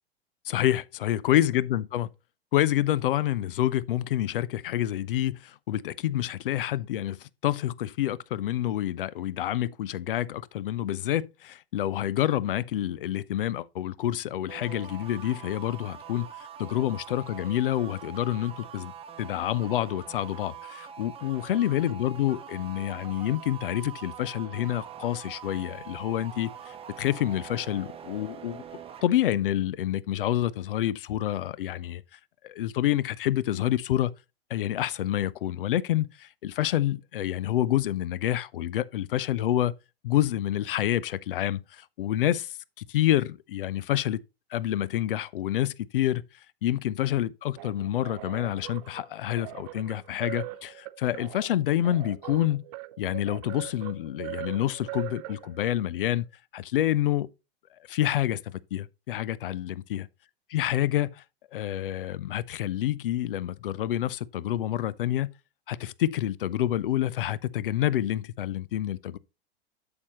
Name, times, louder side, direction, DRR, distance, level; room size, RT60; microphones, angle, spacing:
voice 1, 0.5-2.1 2.5-18.9 19.2-28.6 29.0-32.0 32.4-34.1 34.5-39.7 40.0-44.2 44.5-46.2 46.6-52.6 53.0-56.3 56.5-57.3 57.9-60.1 60.5-61.2 61.5-65.3 65.7-69.2, left 12 dB, 60° left, 0.5 m, -28 dB
sound 1, 14.5-29.1, right 8 dB, 20° right, 0.9 m, -44 dB
sound 2, 47.6-55.8, right 17 dB, 40° right, 0.5 m, -41 dB
8.3 x 6.8 x 3.0 m
figure-of-eight pair, 95°, 32 cm